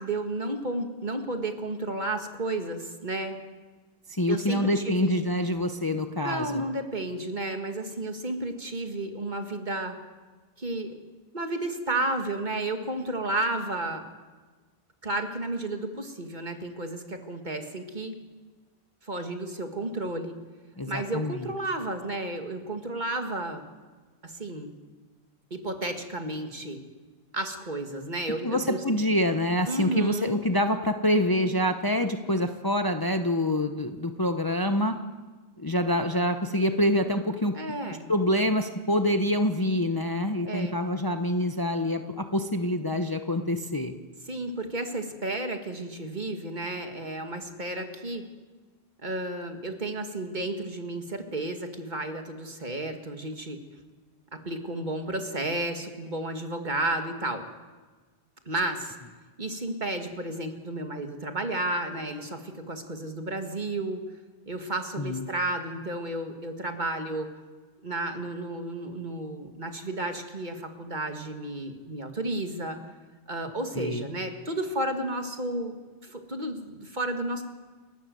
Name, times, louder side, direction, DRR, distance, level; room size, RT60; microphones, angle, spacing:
voice 1, 0.0-3.4 4.3-5.1 6.2-10.0 10.6-11.0 11.3-14.0 15.0-18.2 19.0-20.4 20.9-23.6 24.2-24.7 25.5-26.8 27.3-29.0 29.7-30.4 37.5-38.1 40.4-40.8 44.3-48.2 49.0-53.6 54.3-57.5 58.5-59.0 59.4-64.0 64.5-67.3 67.8-72.8 73.3-75.8 76.0-77.4, right 2 dB, 45° right, 5 dB, 2.0 m, -32 dB
voice 2, 4.1-6.6 20.8-21.5 28.4-35.0 35.6-37.6 38.1-43.9 65.0-65.2 73.8-74.0, left 1 dB, 20° left, 7 dB, 0.9 m, -26 dB
29.0 x 12.5 x 7.7 m, 1.3 s
omnidirectional pair, 1.1 m